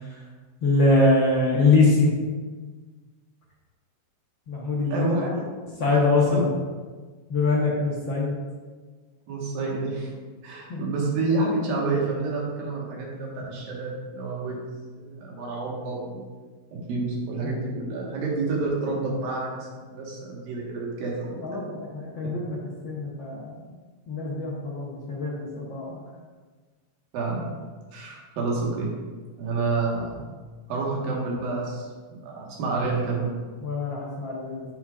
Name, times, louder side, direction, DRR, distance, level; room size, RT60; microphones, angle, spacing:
voice 1, 0.6-2.1 4.5-5.0 5.8-6.5 7.3-8.4 10.7-10.8 17.4-17.5 21.4-22.6 22.8-23.6 24.1-26.0 33.6-34.6, left 3 dB, 90° left, -5 dB, 1.0 m, -23 dB
voice 2, 4.9-5.5 6.3-6.4 9.3-10.1 10.4-14.6 15.0-16.3 16.7-21.2 21.5-21.6 27.1-27.5 27.9-28.9 29.4-30.2 30.7-31.9 32.2-33.3, right 3 dB, 75° right, -3 dB, 3.2 m, -28 dB
10.0 x 7.4 x 2.5 m, 1.4 s
omnidirectional pair, 4.1 m